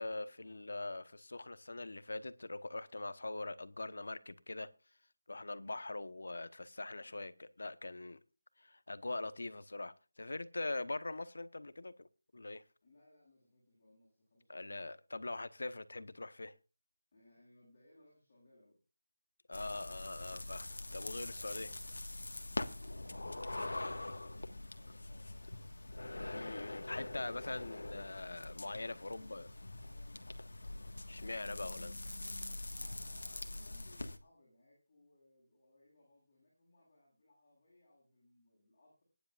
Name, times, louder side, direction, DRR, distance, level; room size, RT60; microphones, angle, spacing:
voice 1, 0.0-4.7 5.3-8.2 8.6-12.1 12.3-12.6 14.5-16.5 19.5-21.7 26.3-29.5 31.1-32.2, left 2 dB, 70° left, 1.1 m, -43 dB
voice 2, 12.8-14.8 17.1-18.8 21.1-22.0 22.5-25.7 28.9-29.5 29.8-30.8 32.6-39.0, left 1 dB, 25° left, 7.6 m, -66 dB
sound 1, 19.5-34.2, left 2 dB, 90° left, 1.6 m, -44 dB
21.0 x 10.5 x 2.5 m
figure-of-eight pair, 175°, 0 cm